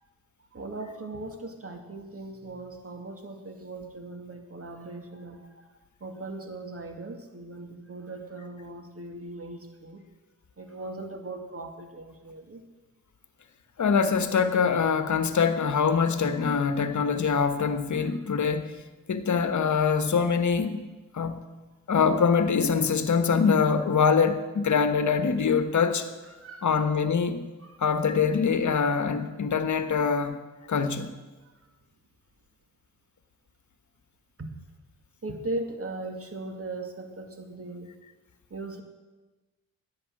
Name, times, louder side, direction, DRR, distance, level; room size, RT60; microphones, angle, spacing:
voice 1, 0.5-5.6 6.0-10.0 10.6-12.6 16.3-16.4 17.1-17.2 18.0-18.4 26.2-26.9 27.6-28.0 30.6-30.7 34.4-34.5 35.2-37.9 38.5-38.8, right 2 dB, 40° right, 2.4 m, -39 dB
voice 2, 13.8-18.7 19.1-20.8 21.1-21.4 21.9-26.1 26.6-27.4 27.8-30.3 30.7-31.1, left 6 dB, 50° left, 1.4 m, -24 dB
11.0 x 9.0 x 8.7 m
hypercardioid pair, 45°, 37 cm